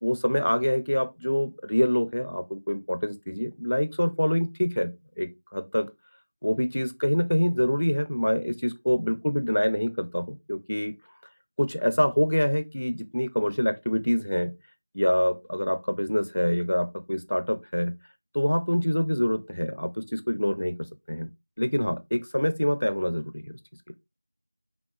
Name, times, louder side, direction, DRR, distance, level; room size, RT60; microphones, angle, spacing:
voice 1, 0.0-5.9 6.4-10.9 11.6-14.5 14.9-17.9 18.3-21.3 21.6-23.5, equal, 65° left, 0.9 m, -26 dB
5.2 x 2.9 x 3.3 m
figure-of-eight pair, 180°, 0 cm